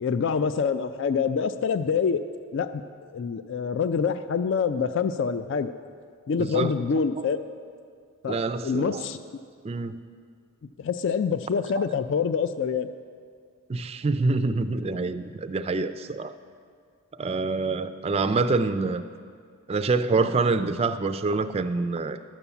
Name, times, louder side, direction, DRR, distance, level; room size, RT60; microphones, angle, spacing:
voice 1, 0.0-2.2 2.5-2.8 3.1-5.7 6.3-7.4 8.2-9.2 10.8-12.9, left 6 dB, 55° left, 12 dB, 0.3 m, -26 dB
voice 2, 6.4-6.8 8.3-9.1 9.6-10.0 11.8-11.9 13.7-16.3 17.1-19.0 19.7-22.2, right 3 dB, 25° right, 10 dB, 0.3 m, -26 dB
12.0 x 7.0 x 7.0 m, 2.2 s
head